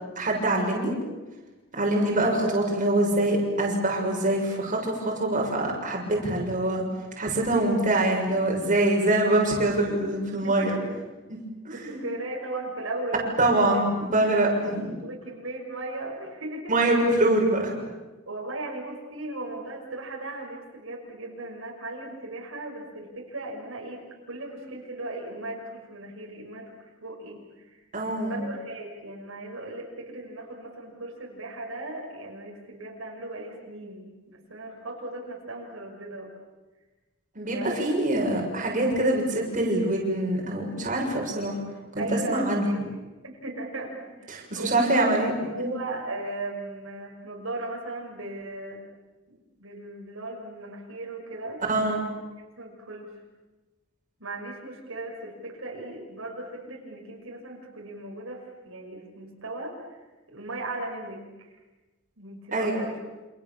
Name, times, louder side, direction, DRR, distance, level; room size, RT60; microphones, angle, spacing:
voice 1, 0.1-0.9 1.7-6.8 7.2-10.8 11.3-11.4 11.6-12.0 13.4-14.9 16.7-17.9 27.9-28.4 37.3-41.6 41.9-42.7 44.3-45.7 51.7-52.0 62.5-62.8, right 1 dB, 40° right, -1 dB, 6.7 m, -24 dB
voice 2, 10.4-10.8 11.7-13.3 15.0-16.7 18.3-26.7 27.0-27.8 28.3-36.3 37.5-37.8 42.0-48.8 49.6-51.6 52.6-53.1 54.2-60.0 60.3-61.6 62.2-62.9, right 2 dB, 75° right, 0 dB, 6.3 m, -37 dB
29.5 x 28.0 x 7.3 m, 1.2 s
head